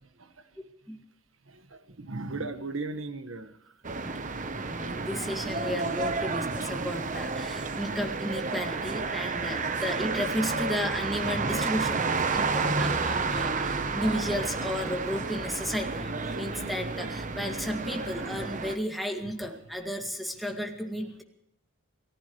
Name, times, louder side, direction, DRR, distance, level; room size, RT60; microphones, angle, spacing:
voice 1, 1.5-3.6 9.4-9.5 18.1-18.5 18.7-18.8 19.2-19.5, right 3 dB, 80° right, 9 dB, 1.5 m, -38 dB
sound 1, 3.8-18.8, right 4 dB, 40° right, 1.0 m, -31 dB
voice 2, 4.7-21.2, equal, ahead, 1 dB, 2.1 m, -33 dB
30.0 x 15.0 x 3.2 m, 0.85 s
head